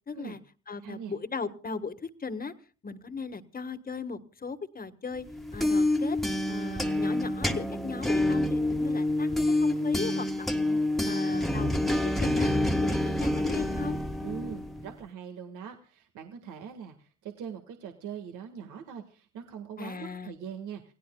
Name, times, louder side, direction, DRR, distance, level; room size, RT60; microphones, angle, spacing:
voice 1, 0.1-0.4 0.7-2.5 2.8-5.2 5.5-6.2 6.5-10.7 11.0-12.5 12.8-14.0 19.8-20.4, left 4 dB, 30° left, 10 dB, 1.5 m, -37 dB
voice 2, 0.8-1.1 14.2-20.9, right 8 dB, 90° right, 5 dB, 1.7 m, -42 dB
sound 1, 5.3-14.9, left 1 dB, ahead, 1.5 m, -27 dB
28.5 x 17.0 x 2.3 m, 0.36 s
cardioid pair, 90°, 30 cm